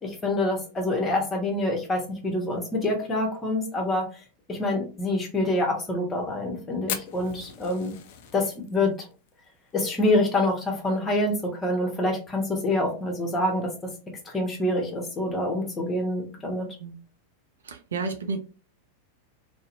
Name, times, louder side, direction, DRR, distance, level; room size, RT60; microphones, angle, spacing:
voice 1, 0.0-4.1 4.5-7.9 8.3-8.9 9.7-13.7 14.3-16.7, left 1 dB, 20° left, 0.9 m, -26 dB
Fire, 6.9-11.4 11.6-11.7 12.0-12.1 12.5-12.9 13.4-13.5 14.6-14.7, left 8 dB, 50° left, 0.4 m, -38 dB
voice 2, 17.6-18.4, right 4 dB, 65° right, 0.4 m, -31 dB
2.5 x 2.0 x 2.5 m
figure-of-eight pair, 90°, 0 cm